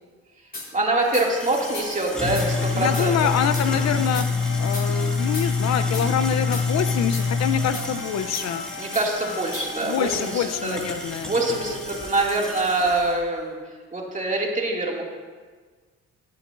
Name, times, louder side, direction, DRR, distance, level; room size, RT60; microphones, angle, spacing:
sound 1, 0.5-0.7 1.1-1.3 1.7-1.9 2.4-2.5 2.9-3.1 3.5-3.7 4.1-4.3 4.7-4.9 5.3-5.5 5.9-6.1 6.5-6.7 7.1-7.3 7.7-7.9 8.3-8.5 8.9-9.1 9.5-9.7, left 2 dB, 30° left, 2.6 m, -35 dB
voice 1, 0.7-3.2 8.8-10.8 11.2-13.6 13.9-15.0, right 2 dB, 25° right, -1 dB, 2.1 m, -24 dB
sound 2, 1.0-13.1, left 4 dB, 5° left, 2.0 m, -27 dB
sound 3, 1.5-12.6, left 4 dB, 85° left, 1.1 m, -39 dB
voice 2, 2.7-4.3 4.6-8.7 9.8-11.3, left 8 dB, 60° left, 11 dB, 0.5 m, -26 dB
19.0 x 8.5 x 2.5 m, 1.5 s
cardioid pair, 90°, 30 cm